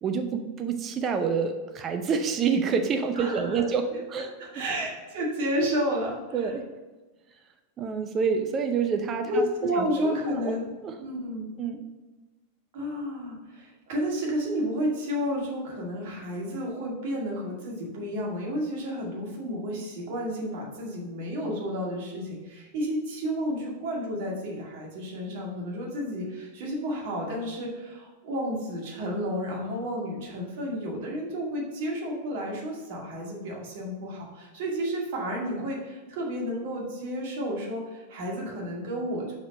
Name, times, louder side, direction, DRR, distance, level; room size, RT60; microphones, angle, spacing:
voice 1, 0.0-4.3 6.3-6.6 7.8-9.5 9.8-10.5 10.8-10.9 11.6-11.8, right 6 dB, 30° right, 6 dB, 0.6 m, -27 dB
voice 2, 3.2-3.6 4.2-6.6 9.2-10.7 11.0-11.5 12.7-39.3, equal, 50° right, -1 dB, 1.9 m, -31 dB
6.1 x 5.1 x 5.2 m, 1.2 s
figure-of-eight pair, 90°, 0 cm